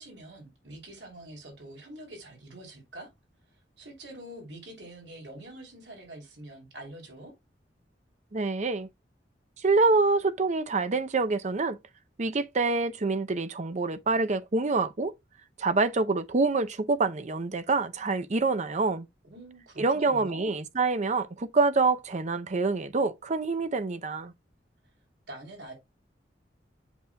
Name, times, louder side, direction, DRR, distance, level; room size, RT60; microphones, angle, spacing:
voice 1, 0.0-3.1 3.8-7.3 19.2-20.6 25.3-25.7, right 1 dB, 80° right, 3.1 m, -45 dB
voice 2, 8.3-8.9 9.6-11.8 12.2-15.1 15.6-19.1 19.8-24.3, right 3 dB, 40° right, 0.6 m, -26 dB
8.1 x 6.6 x 2.3 m
head